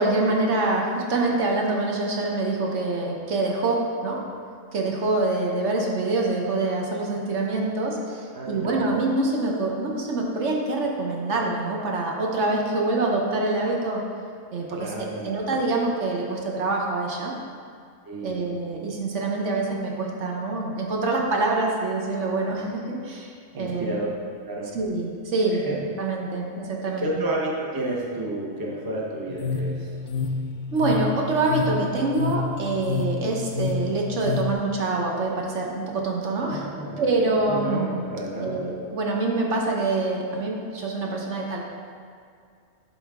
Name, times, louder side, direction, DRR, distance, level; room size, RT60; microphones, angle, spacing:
voice 1, 0.0-4.2 4.7-14.0 14.5-17.3 18.2-24.1 24.7-25.6 26.0-27.2 30.7-36.7 37.0-38.1 38.4-41.6, right 2 dB, 65° right, -1 dB, 1.2 m, -25 dB
voice 2, 8.3-8.7 14.8-15.3 18.0-18.4 23.5-24.1 24.4-24.7 25.6-25.8 27.0-29.9 36.4-37.0 37.4-38.6, right 1 dB, 20° right, -3 dB, 0.8 m, -31 dB
sound 1, 29.3-34.5, left 4 dB, 65° left, 0.6 m, -29 dB
11.0 x 4.0 x 3.6 m, 2.3 s
omnidirectional pair, 1.3 m